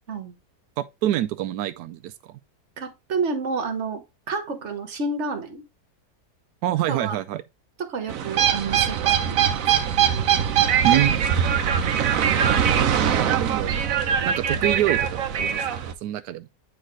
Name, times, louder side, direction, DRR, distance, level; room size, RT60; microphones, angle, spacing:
voice 1, 0.8-2.4 6.6-7.4 10.8-11.2 12.9-13.7 14.2-16.5, right 13 dB, 90° right, 1.1 m, -26 dB
voice 2, 2.8-5.6 6.9-7.2 7.8-9.6, right 4 dB, 50° right, 1.5 m, -30 dB
sound 1, 8.1-15.9, right 8 dB, 65° right, 1.1 m, -22 dB
9.1 x 4.0 x 3.2 m
omnidirectional pair, 1.7 m